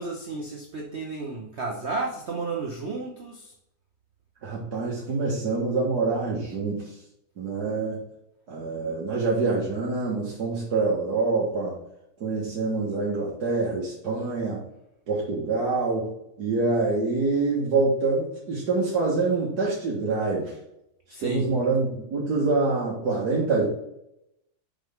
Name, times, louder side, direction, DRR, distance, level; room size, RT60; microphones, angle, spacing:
voice 1, 0.0-3.5 21.1-21.5, right 3 dB, 80° right, 1 dB, 0.6 m, -32 dB
voice 2, 4.4-6.8 7.4-8.0 8.5-11.7 12.2-14.6 15.1-16.1 16.4-20.5 21.2-23.7, right 3 dB, 55° right, -6 dB, 1.8 m, -25 dB
6.3 x 5.4 x 3.6 m, 0.79 s
omnidirectional pair, 2.2 m